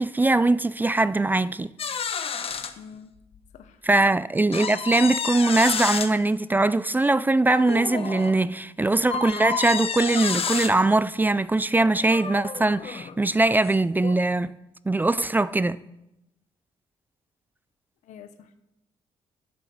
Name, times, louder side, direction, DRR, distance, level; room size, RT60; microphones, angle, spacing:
voice 1, 0.0-1.7 3.8-14.6 14.9-15.8, right 2 dB, 15° right, 0.4 m, -21 dB
sound 1, 1.8-2.7 3.3-3.4 4.5-6.1 7.5-8.3 9.1-10.7 11.8-13.2 13.6-13.8 14.0-14.2, left 6 dB, 50° left, 0.9 m, -30 dB
voice 2, 2.8-3.1 3.5-3.8 4.1-4.2 18.1-18.6, left 7 dB, 80° left, 0.9 m, -46 dB
8.8 x 6.8 x 6.2 m
supercardioid pair, 65°, 12 cm